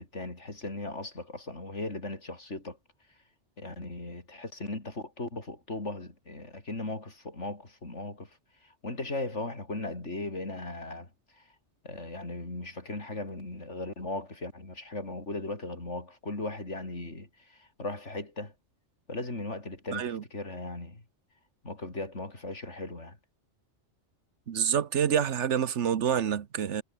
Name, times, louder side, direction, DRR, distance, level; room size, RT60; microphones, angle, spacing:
voice 1, 0.0-2.8 3.6-8.3 8.6-11.1 11.8-18.5 19.1-21.0 21.6-23.2, left 2 dB, 80° left, 5.1 m, -37 dB
voice 2, 19.9-20.2 24.5-26.8, right 8 dB, 80° right, 1.3 m, -27 dB
omnidirectional pair, 1.2 m